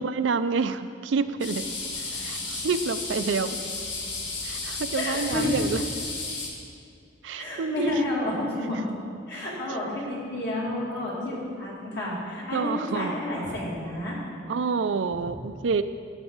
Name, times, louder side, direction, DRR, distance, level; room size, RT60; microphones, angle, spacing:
voice 1, 0.0-1.6 2.2-3.6 4.4-5.8 7.2-7.9 9.3-9.4 12.5-13.2 14.5-15.8, right 5 dB, 85° right, 11 dB, 0.4 m, -28 dB
sound 1, 1.4-6.5, left 3 dB, 80° left, 1.7 m, -33 dB
voice 2, 4.9-5.6 7.4-8.8 9.3-14.2 15.2-15.3, left 1 dB, 65° left, -5 dB, 2.7 m, -30 dB
13.5 x 7.1 x 3.9 m, 2.5 s
head